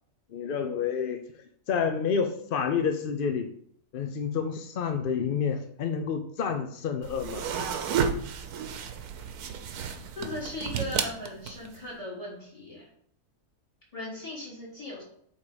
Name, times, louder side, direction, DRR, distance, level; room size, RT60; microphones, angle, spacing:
voice 1, 0.3-1.2 1.7-3.5 3.9-7.5, left 6 dB, 65° left, 6 dB, 0.5 m, -29 dB
sound 1, 7.0-11.8, right 7 dB, 85° right, 1.3 m, -32 dB
voice 2, 10.1-12.8 13.9-15.0, left 1 dB, 20° left, -5 dB, 3.3 m, -38 dB
8.1 x 3.6 x 5.1 m, 0.64 s
omnidirectional pair, 1.6 m